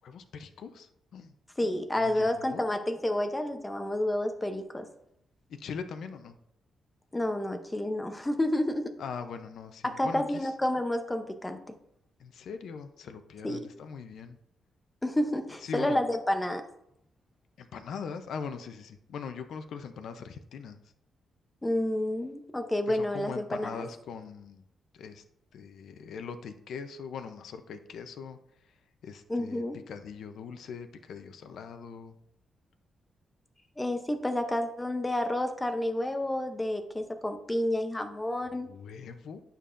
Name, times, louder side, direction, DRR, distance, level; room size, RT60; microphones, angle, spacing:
voice 1, 0.0-1.3 2.0-2.7 5.5-6.4 9.0-10.5 12.2-14.4 15.6-16.0 17.6-20.8 22.9-24.6 24.9-25.2 25.5-28.4 29.0-32.1 38.5-39.4, left 6 dB, 65° left, 8 dB, 0.6 m, -41 dB
voice 2, 1.6-4.9 7.1-8.9 9.8-11.6 13.4-13.6 15.0-16.6 21.6-23.9 29.3-29.8 33.8-38.7, left 1 dB, 10° left, 6 dB, 0.6 m, -30 dB
8.9 x 6.8 x 2.5 m, 0.76 s
wide cardioid pair, 175°, 0 cm